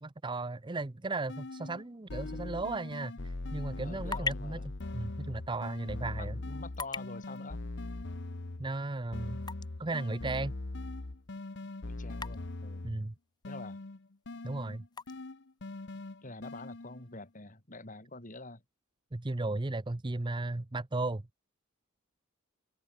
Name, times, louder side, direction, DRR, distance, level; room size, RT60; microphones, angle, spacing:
voice 1, 0.0-4.6 4.9-6.4 8.6-9.4 9.8-10.5 12.8-13.1 14.4-14.8 19.1-21.2, right 2 dB, 20° right, 0.6 m, -35 dB
sound 1, 1.3-1.8 2.1-8.8 9.1-13.1 13.4-17.2, left 2 dB, 55° left, 1.0 m, -41 dB
sound 2, 3.6-17.4, left 4 dB, 20° left, 1.0 m, -47 dB
voice 2, 3.8-4.7 6.2-7.6 11.8-12.9 13.5-13.8 16.2-18.6, left 2 dB, 40° left, 5.1 m, -46 dB
head